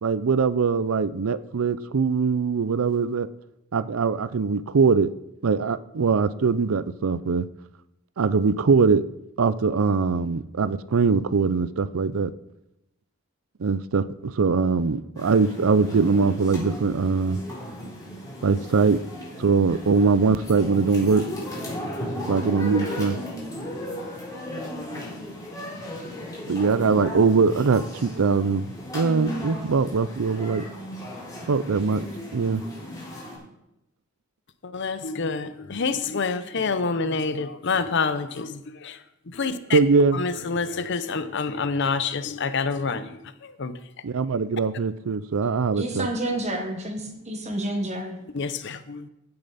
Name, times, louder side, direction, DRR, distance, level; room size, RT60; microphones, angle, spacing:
voice 1, 0.0-3.3 3.7-5.1 5.4-7.5 8.2-9.0 9.4-12.3 13.6-17.4 18.4-19.0 19.4-21.3 22.3-23.2 24.9-25.0 26.5-28.7 28.9-30.6 31.5-32.0 32.3-32.6 39.7-40.2 44.0-46.1, right 4 dB, 85° right, 16 dB, 0.5 m, -22 dB
sound 1, 15.2-33.4, equal, 20° left, 4.0 m, -36 dB
voice 2, 34.6-39.8 40.1-43.8 48.3-49.1, left 4 dB, 60° left, 12 dB, 0.7 m, -28 dB
voice 3, 45.8-48.2, right 1 dB, 35° right, 3 dB, 1.5 m, -29 dB
15.0 x 6.7 x 4.2 m, 0.89 s
head